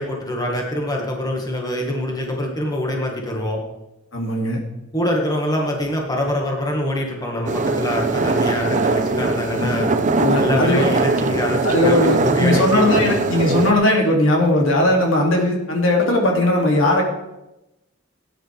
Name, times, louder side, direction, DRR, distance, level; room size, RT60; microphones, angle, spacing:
voice 1, 0.0-3.6 4.9-9.9 10.4-13.1, left 1 dB, 20° left, 0 dB, 1.8 m, -24 dB
voice 2, 4.1-4.6 9.5-9.8 10.2-10.8 11.6-17.0, left 1 dB, 85° left, -1 dB, 2.6 m, -18 dB
sound 1, 7.5-13.7, right 3 dB, 40° right, 0.8 m, -21 dB
17.0 x 9.7 x 3.5 m, 0.96 s
head